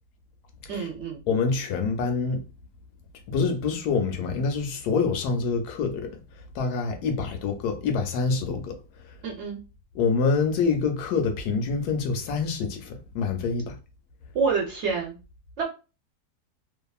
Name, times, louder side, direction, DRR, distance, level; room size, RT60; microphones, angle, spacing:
voice 1, 0.7-1.2 9.2-9.6 14.3-15.1 15.6-15.7, right 5 dB, 60° right, 0.8 m, -27 dB
voice 2, 1.3-2.4 3.3-6.2 6.5-8.8 9.9-13.7, left 5 dB, 90° left, 1.2 m, -26 dB
2.7 x 2.5 x 2.3 m
omnidirectional pair, 1.6 m